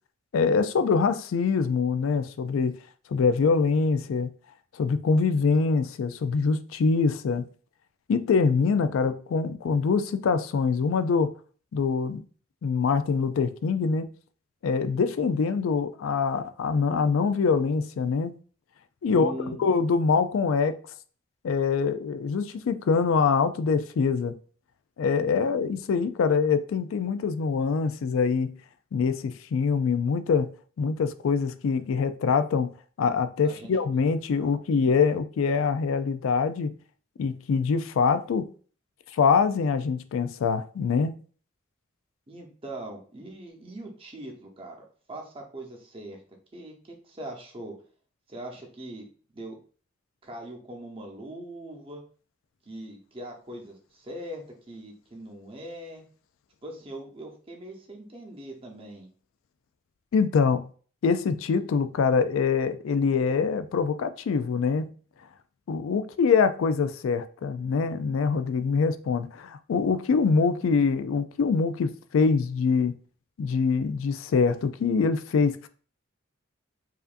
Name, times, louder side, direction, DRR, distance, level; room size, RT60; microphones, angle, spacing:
voice 1, 0.3-2.8 3.1-4.3 4.8-7.4 8.1-11.3 11.7-12.2 12.6-14.1 14.6-18.3 19.0-19.3 19.6-20.8 21.4-24.3 25.0-28.6 28.9-30.5 30.8-32.7 33.0-36.7 37.2-38.5 39.1-41.1 60.1-60.7 61.0-64.9 65.7-72.9 73.4-75.7, left 5 dB, 75° left, 0.3 m, -24 dB
voice 2, 19.1-19.7 33.4-33.7 34.4-34.5 42.3-46.2 46.5-47.7 48.3-49.1 49.3-49.6 50.2-52.0 52.7-56.0 56.6-59.1, right 1 dB, 25° right, 0.8 m, -41 dB
4.8 x 2.5 x 2.5 m
head